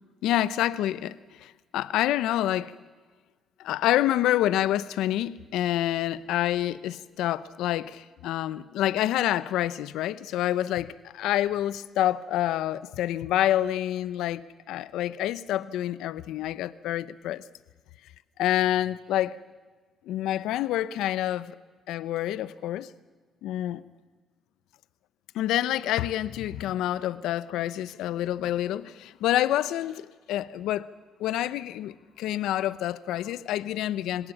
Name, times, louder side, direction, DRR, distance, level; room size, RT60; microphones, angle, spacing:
voice 1, 0.2-2.7 3.6-17.4 18.4-19.4 20.1-21.5 21.9-22.9 23.4-23.8 25.3-30.9 31.2-34.3, left 13 dB, 90° left, 0.7 m, -27 dB
25.5 x 18.0 x 7.2 m
cardioid pair, 90°, 0 cm